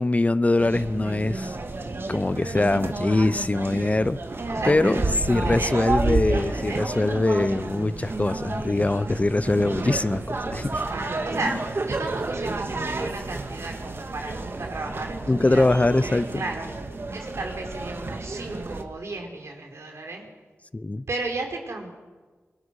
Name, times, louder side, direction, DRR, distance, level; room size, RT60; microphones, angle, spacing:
voice 1, 0.0-1.6 2.1-4.2 4.6-10.8 15.3-16.4 20.7-21.0, left 2 dB, 30° left, 0.7 m, -23 dB
sound 1, 0.6-18.8, right 3 dB, 50° right, 2.2 m, -30 dB
voice 2, 4.5-5.8 6.3-6.9 10.9-16.7 17.1-20.3 21.1-21.9, right 2 dB, 70° right, 5.3 m, -34 dB
27.5 x 20.0 x 6.4 m
wide cardioid pair, 65°, 5 cm